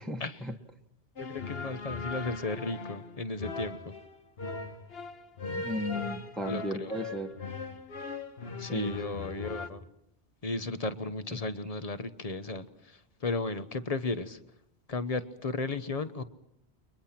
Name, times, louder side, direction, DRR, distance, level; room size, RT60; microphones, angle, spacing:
voice 1, 0.0-0.5 5.5-7.3 8.7-9.0, left 1 dB, ahead, 3 dB, 1.3 m, -35 dB
sound 1, 1.2-9.7, left 3 dB, 70° left, 1.6 m, -39 dB
voice 2, 1.2-4.0 6.5-6.9 8.6-9.8 10.4-14.4 14.9-16.2, left 3 dB, 35° left, 11 dB, 1.1 m, -34 dB
30.0 x 23.0 x 5.9 m, 0.74 s
omnidirectional pair, 1.1 m